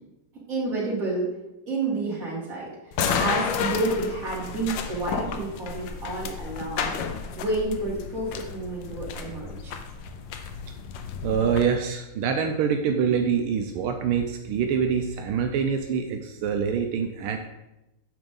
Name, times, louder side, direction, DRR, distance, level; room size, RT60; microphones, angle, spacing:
voice 1, 0.5-1.3 1.7-6.9 7.4-9.7, right 2 dB, 40° right, -5 dB, 2.8 m, -30 dB
sound 1, 2.9-11.6, left 6 dB, 70° left, 1.3 m, -31 dB
voice 2, 11.2-17.4, right 7 dB, 85° right, 4 dB, 1.5 m, -25 dB
8.8 x 6.1 x 3.8 m, 0.95 s
omnidirectional pair, 2.4 m